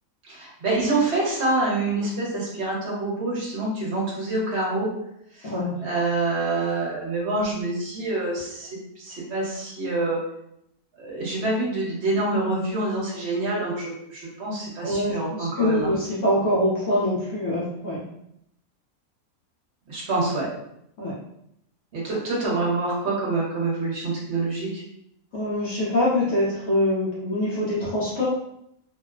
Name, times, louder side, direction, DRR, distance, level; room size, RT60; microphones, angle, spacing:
voice 1, 0.2-4.9 5.4-5.5 5.8-8.7 9.0-10.2 11.0-15.9 19.9-20.5 21.9-24.8, right 2 dB, 55° right, -5 dB, 1.0 m, -26 dB
voice 2, 5.4-5.8 14.8-18.0 21.0-21.1 25.3-28.2, left 1 dB, 65° left, -7 dB, 1.0 m, -24 dB
2.9 x 2.0 x 2.4 m, 0.77 s
omnidirectional pair, 1.5 m